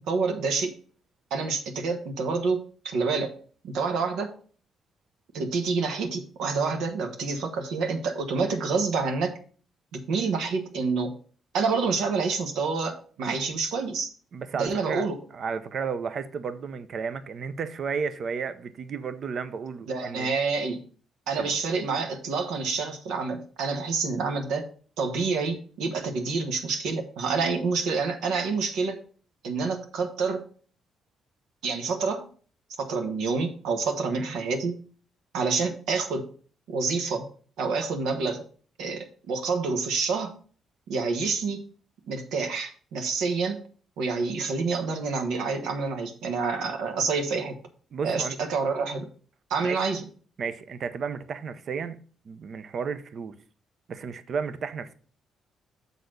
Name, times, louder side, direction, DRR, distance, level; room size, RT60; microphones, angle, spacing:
voice 1, 0.1-0.7 1.3-3.3 3.6-4.3 5.3-9.3 9.9-11.1 11.5-14.1 14.5-15.2 19.9-20.8 21.3-24.7 25.0-29.0 29.4-30.4 31.6-32.3 32.8-34.7 35.3-36.3 36.7-37.3 37.6-38.4 38.8-40.3 40.9-41.6 42.1-43.6 44.0-47.6 48.0-49.1 49.5-50.0, right 4 dB, 85° right, 1.4 m, -28 dB
voice 2, 14.3-15.1 15.3-20.3 21.4-21.6 34.1-34.4 47.9-48.4 49.6-49.9 50.4-52.0 52.2-53.4 53.9-54.9, right 6 dB, 55° right, 0.7 m, -33 dB
6.9 x 4.1 x 6.3 m
cardioid pair, 90°, 0 cm